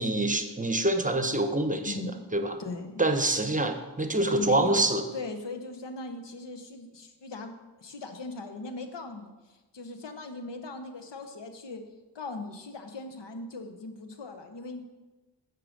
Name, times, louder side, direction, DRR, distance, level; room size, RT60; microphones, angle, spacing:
voice 1, 0.0-2.1 2.3-2.6 3.0-5.0, right 2 dB, 20° right, 6 dB, 0.8 m, -26 dB
voice 2, 1.8-2.3 2.6-3.0 4.3-7.5 7.8-9.3 9.7-11.8 12.1-14.8, left 3 dB, 70° left, 6 dB, 1.0 m, -39 dB
6.7 x 4.7 x 6.2 m, 1.2 s
cardioid pair, 55°, 44 cm